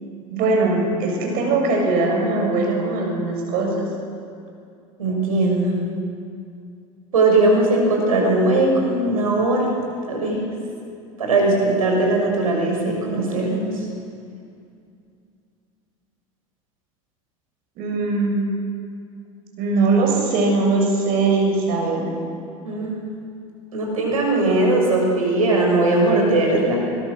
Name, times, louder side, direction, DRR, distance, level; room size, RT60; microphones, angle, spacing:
voice 1, 0.3-3.8 17.8-18.5 19.6-22.2, right 3 dB, 55° right, 0 dB, 7.0 m, -20 dB
voice 2, 5.0-5.7 7.1-9.7 10.1-10.4 11.2-13.6 22.6-23.1 23.7-26.8, right 2 dB, 85° right, 0 dB, 6.5 m, -19 dB
24.0 x 22.0 x 6.5 m, 2.4 s
hypercardioid pair, 75°, 18 cm